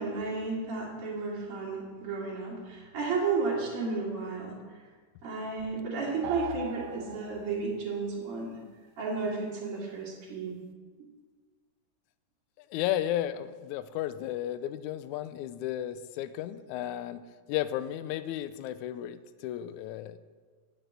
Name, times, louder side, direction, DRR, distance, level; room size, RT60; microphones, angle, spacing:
voice 1, 0.0-4.5 5.2-8.6 9.0-10.5, right 4 dB, 55° right, -5 dB, 2.8 m, -33 dB
sound 1, 6.2-7.7, right 10 dB, 80° right, 1.9 m, -39 dB
voice 2, 12.7-17.2 17.5-20.2, left 12 dB, 85° left, 13 dB, 1.9 m, -33 dB
8.7 x 6.1 x 8.0 m, 1.5 s
omnidirectional pair, 3.3 m